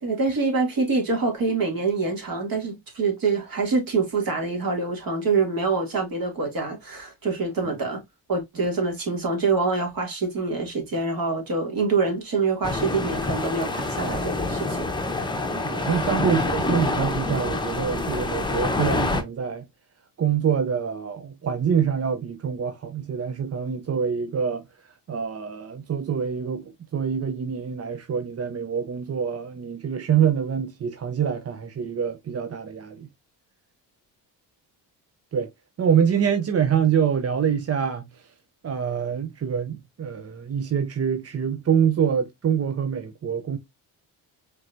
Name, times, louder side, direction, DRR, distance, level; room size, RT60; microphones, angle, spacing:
voice 1, 0.0-8.0 8.3-14.8 15.1-15.3, right 4 dB, 55° right, 2.2 m, -25 dB
sound 1, 12.6-19.2, left 2 dB, 10° left, 0.8 m, -26 dB
voice 2, 15.6-19.7 20.2-24.6 25.1-33.1 35.3-35.5 35.8-38.3 38.6-43.6, right 7 dB, 35° right, 0.6 m, -25 dB
4.6 x 3.2 x 2.5 m
cardioid pair, 90°, 42 cm